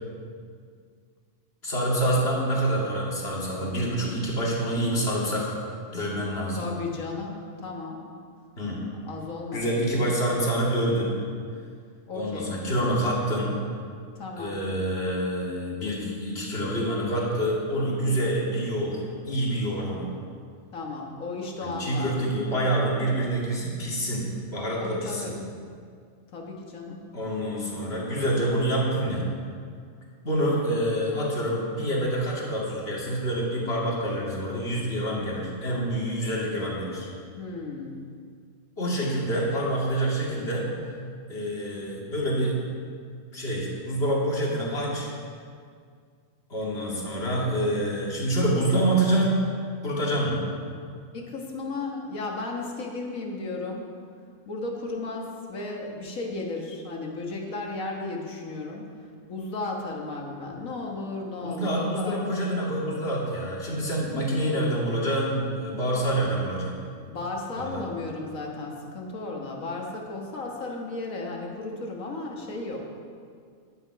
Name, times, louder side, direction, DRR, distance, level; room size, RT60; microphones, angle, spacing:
voice 1, 1.6-5.5 5.9-6.6 8.6-8.8 9.5-11.1 12.1-13.5 14.4-20.1 21.6-25.4 27.1-29.2 30.2-37.1 38.8-40.7 41.3-42.5 43.3-45.1 46.5-49.4 49.8-50.4 61.4-66.8 67.5-67.8, right 1 dB, 50° left, -4 dB, 2.4 m, -27 dB
voice 2, 6.6-8.0 9.0-9.8 12.1-12.6 14.2-14.6 20.7-22.2 24.8-25.3 26.3-27.0 37.4-38.0 51.1-53.9 54.5-58.9 59.3-62.2 67.1-72.8, left 3 dB, 85° left, 0 dB, 1.9 m, -34 dB
11.0 x 9.2 x 4.8 m, 2.2 s
omnidirectional pair, 1.4 m